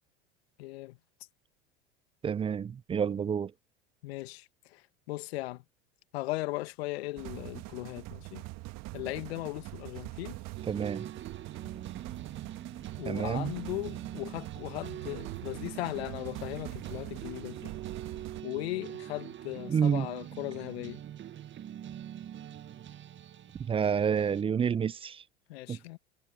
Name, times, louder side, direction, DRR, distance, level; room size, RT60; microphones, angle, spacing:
voice 1, 0.6-1.0 4.0-5.6 6.1-8.4 8.9-10.4 13.0-17.7 18.4-21.0 25.5-26.0, left 19 dB, 65° left, 1.8 m, -38 dB
voice 2, 2.2-3.5 10.7-11.1 13.0-13.5 19.7-20.1 23.6-25.2 25.7-25.8, right 7 dB, 15° right, 0.4 m, -29 dB
sound 1, 7.2-18.4, right 22 dB, 50° right, 1.9 m, -43 dB
sound 2, 10.6-24.4, right 10 dB, 35° right, 1.8 m, -44 dB
Motorcycle, 15.0-20.2, right 10 dB, 80° right, 7.8 m, -52 dB
hypercardioid pair, 75°, 33 cm